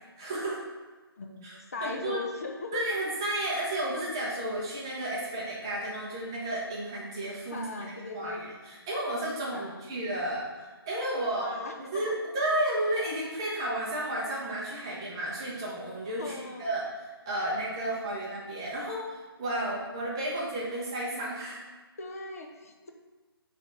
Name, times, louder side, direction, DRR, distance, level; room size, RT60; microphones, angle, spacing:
voice 1, 0.2-0.6 1.4-2.2 2.7-21.6, right 1 dB, 10° right, -6 dB, 0.7 m, -32 dB
voice 2, 1.2-2.8 7.5-8.4 9.5-9.8 11.4-12.0 16.2-16.7 22.0-22.9, left 3 dB, 35° left, 3 dB, 0.6 m, -38 dB
5.8 x 3.4 x 5.2 m, 1.3 s
hypercardioid pair, 175°, 13 cm